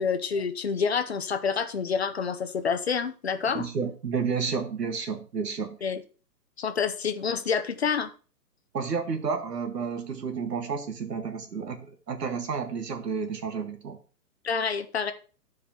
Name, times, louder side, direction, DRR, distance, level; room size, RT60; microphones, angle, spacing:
voice 1, 0.0-3.7 5.8-6.0 6.6-8.1 14.4-15.1, left 6 dB, 40° left, 0.7 m, -28 dB
voice 2, 3.5-5.8 8.7-14.0, right 5 dB, 75° right, 1.8 m, -31 dB
14.0 x 4.9 x 3.0 m
hypercardioid pair, 175°, 49 cm